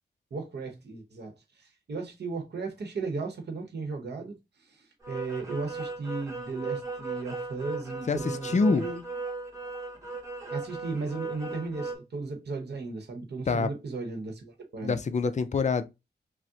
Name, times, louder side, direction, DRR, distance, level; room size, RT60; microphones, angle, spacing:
voice 1, 0.3-9.0 10.5-15.0, right 3 dB, 70° right, 0.9 m, -36 dB
sound 1, 5.0-11.9, right 3 dB, 15° right, 1.0 m, -37 dB
voice 2, 8.1-8.8 13.5-13.7 14.8-15.8, left 4 dB, 40° left, 0.4 m, -26 dB
6.0 x 2.1 x 2.7 m
wide cardioid pair, 150°, 18 cm